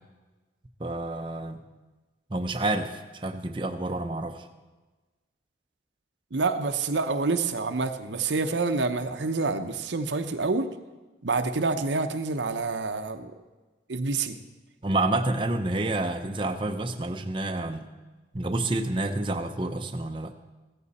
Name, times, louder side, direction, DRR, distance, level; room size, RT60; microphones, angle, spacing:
voice 1, 0.8-1.6 2.3-4.5 14.8-17.9 18.3-20.3, right 2 dB, 25° right, 5 dB, 0.7 m, -29 dB
voice 2, 6.3-10.7 11.2-13.3 13.9-14.4, right 3 dB, 80° right, 8 dB, 0.8 m, -27 dB
16.0 x 14.0 x 4.2 m, 1.2 s
head